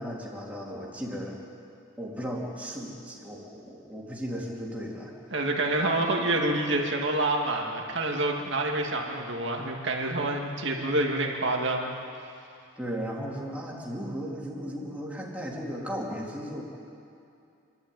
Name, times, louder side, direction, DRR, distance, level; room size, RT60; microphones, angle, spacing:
voice 1, 0.0-1.4 2.0-5.1 12.8-16.6, equal, 5° right, -4 dB, 3.0 m, -36 dB
voice 2, 5.3-11.9, right 2 dB, 55° right, 0 dB, 2.4 m, -27 dB
27.0 x 12.0 x 9.3 m, 2.6 s
head